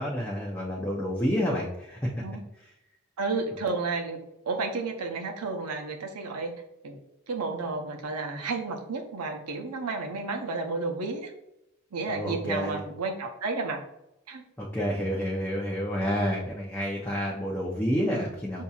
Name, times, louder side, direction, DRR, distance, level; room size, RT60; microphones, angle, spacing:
voice 1, 0.0-2.1 12.1-12.8 14.6-18.6, equal, 10° left, -4 dB, 0.5 m, -29 dB
voice 2, 3.2-4.2 4.5-6.5 6.8-7.0 7.3-11.3 11.9-13.8 14.3-14.4 18.5-18.6, right 3 dB, 90° right, 3 dB, 0.7 m, -32 dB
6.8 x 2.7 x 2.4 m, 0.87 s
head